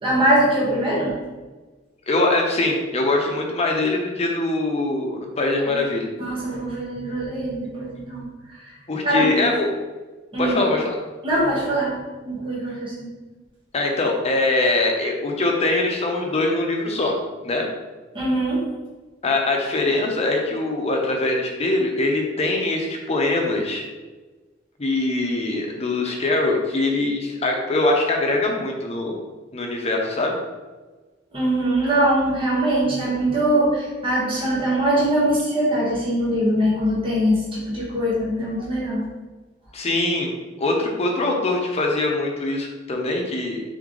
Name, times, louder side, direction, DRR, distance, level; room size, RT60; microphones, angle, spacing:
voice 1, 0.0-1.2 5.7-5.8 6.2-8.2 8.6-8.7 9.0-9.5 10.3-10.6 11.2-12.0 12.2-13.1 18.1-18.6 31.3-39.0, right 1 dB, 30° right, -6 dB, 1.0 m, -22 dB
voice 2, 2.1-6.1 8.9-9.7 10.4-10.9 13.7-17.2 17.4-17.7 19.2-23.9 24.8-29.2 29.5-30.4 39.7-40.3 40.6-43.6, left 2 dB, 35° left, 1 dB, 0.7 m, -22 dB
3.5 x 3.3 x 3.7 m, 1.3 s
head